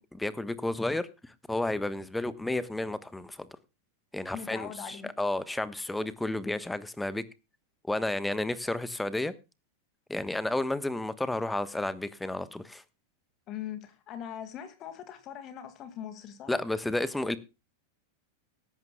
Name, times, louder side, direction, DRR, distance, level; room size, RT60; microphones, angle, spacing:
voice 1, 0.0-3.5 4.1-7.2 7.9-9.3 10.1-12.8 16.5-17.4, left 2 dB, 5° left, 1.2 m, -32 dB
voice 2, 4.3-5.1 13.5-16.6, left 9 dB, 35° left, 2.2 m, -41 dB
17.0 x 14.5 x 2.3 m
figure-of-eight pair, 90°, 0 cm